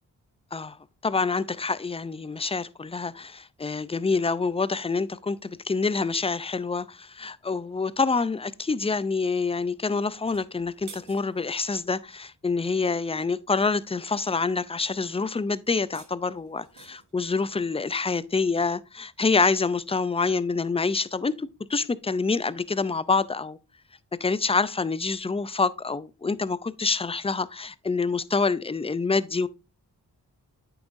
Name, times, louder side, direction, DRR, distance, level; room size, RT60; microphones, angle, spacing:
voice 1, 1.0-23.6 24.2-29.5, left 4 dB, 15° left, 0.4 m, -27 dB
sound 1, 10.1-11.7 15.7-17.2, right 6 dB, 90° right, 1.3 m, -50 dB
8.8 x 7.1 x 2.6 m
cardioid pair, 50°, 40 cm